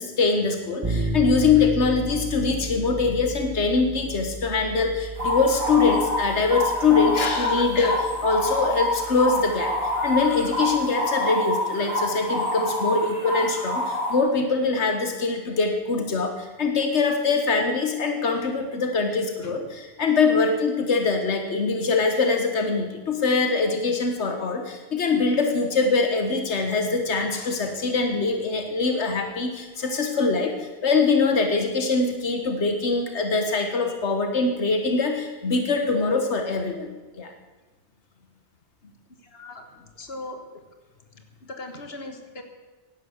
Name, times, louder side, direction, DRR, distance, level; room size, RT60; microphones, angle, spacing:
voice 1, 0.0-7.9 8.2-37.3, left 4 dB, 90° left, 5 dB, 1.7 m, -23 dB
sound 1, 0.8-10.6, right 1 dB, 20° right, 2.2 m, -34 dB
sound 2, 5.2-14.1, left 1 dB, 60° right, 6.2 m, -26 dB
voice 2, 7.1-8.1 19.4-19.6 27.3-27.6 38.8-38.9 39.2-39.7 40.0-40.4 41.1-42.4, left 3 dB, 65° left, 6 dB, 2.1 m, -35 dB
16.5 x 11.5 x 7.2 m, 1.2 s
omnidirectional pair, 1.1 m